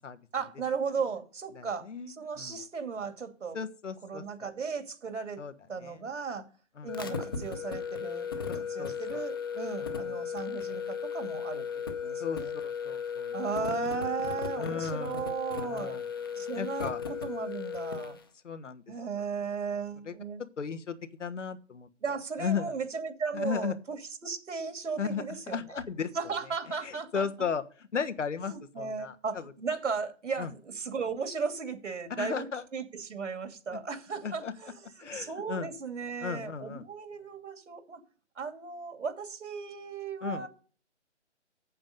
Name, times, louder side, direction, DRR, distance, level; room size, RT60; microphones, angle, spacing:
voice 1, 0.3-3.6 4.0-5.4 5.7-6.5 6.8-11.6 12.0-12.5 13.3-16.0 16.4-18.2 18.9-20.4 22.0-25.8 26.1-27.3 28.4-38.0 38.4-40.5, right 5 dB, 85° right, 8 dB, 2.7 m, -36 dB
voice 2, 1.6-2.6 3.5-4.2 5.4-5.5 5.8-6.0 6.8-7.2 8.5-9.2 9.8-10.2 12.2-13.4 14.6-15.2 15.6-16.0 16.5-17.0 18.4-18.8 20.1-20.2 20.6-21.9 22.4-22.7 23.3-23.7 25.0-26.1 26.8-29.4 30.4-30.5 32.2-32.6 33.7-33.8 34.2-34.5 35.0-35.7 36.2-36.8 40.2-40.5, left 6 dB, 85° left, 10 dB, 1.4 m, -35 dB
sound 1, 6.9-18.2, left 6 dB, 20° left, 0.7 m, -36 dB
8.7 x 7.7 x 5.3 m, 0.40 s
hypercardioid pair, 170°, 36 cm